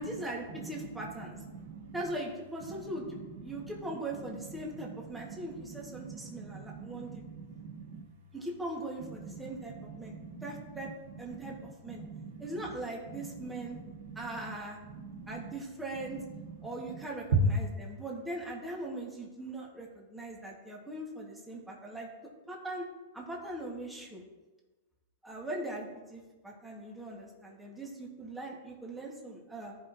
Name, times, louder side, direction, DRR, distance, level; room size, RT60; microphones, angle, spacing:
voice 1, 0.0-1.4 1.9-3.2 3.4-7.2 8.3-10.1 10.4-10.9 11.2-12.0 12.4-13.8 14.2-14.8 15.3-16.2 16.6-22.1 22.5-22.9 23.1-24.2 25.2-29.8, right 1 dB, 5° right, -3 dB, 1.9 m, -40 dB
voice 2, 1.2-2.0 2.7-2.8 3.4-3.7 4.4-4.5 4.7-5.5 5.8-8.0 9.2-10.8 11.3-12.6 13.1-14.5 14.9-15.5 16.3-16.6 16.9-17.0 17.3-17.6, right 2 dB, 70° right, 2 dB, 1.4 m, -38 dB
14.0 x 5.5 x 3.0 m, 1.2 s
hypercardioid pair, 135°, 0 cm